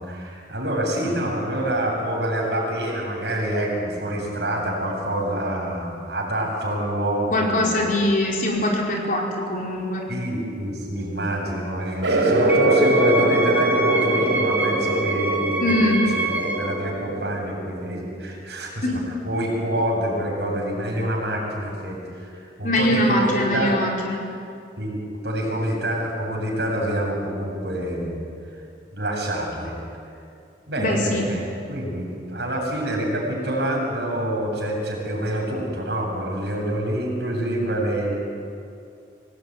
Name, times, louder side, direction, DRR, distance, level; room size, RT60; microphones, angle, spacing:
voice 1, 0.0-7.8 10.1-16.0 16.3-18.9 19.2-22.3 22.6-23.7 24.8-28.2 28.9-29.7 30.7-38.1, right 1 dB, 65° right, -1 dB, 7.5 m, -27 dB
voice 2, 7.3-10.0 15.6-16.0 18.8-19.0 22.6-24.2 30.8-31.2, left 1 dB, 45° left, -2 dB, 5.0 m, -22 dB
sound 1, 12.0-18.2, right 1 dB, 85° right, 6.1 m, -22 dB
Wind instrument woodwind instrument, 12.5-16.8, right 2 dB, 10° right, 3.4 m, -26 dB
25.0 x 18.5 x 9.4 m, 2.5 s
head